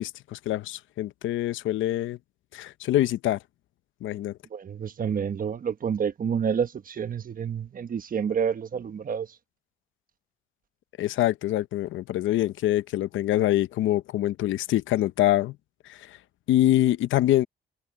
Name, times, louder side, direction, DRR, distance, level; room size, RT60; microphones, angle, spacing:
voice 1, 0.0-2.2 2.5-3.4 4.0-4.4 11.0-15.6 15.9-16.2 16.5-17.5, left 14 dB, 80° left, 0.8 m, -25 dB
voice 2, 4.5-9.3, right 7 dB, 45° right, 1.2 m, -29 dB
cardioid pair, 90°, 20 cm